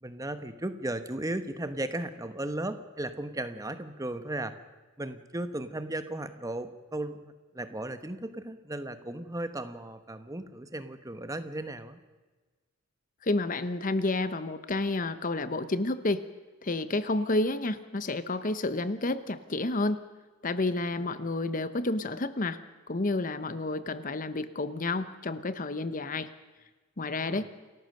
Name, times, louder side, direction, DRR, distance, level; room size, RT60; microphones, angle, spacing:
voice 1, 0.0-4.5 5.0-12.0 27.2-27.4, right 1 dB, 15° right, 10 dB, 1.1 m, -36 dB
voice 2, 13.2-16.2 16.6-20.0 20.4-22.6 22.9-26.3 27.0-27.5, left 2 dB, 40° left, 12 dB, 0.9 m, -30 dB
28.5 x 14.5 x 6.7 m, 1.3 s
head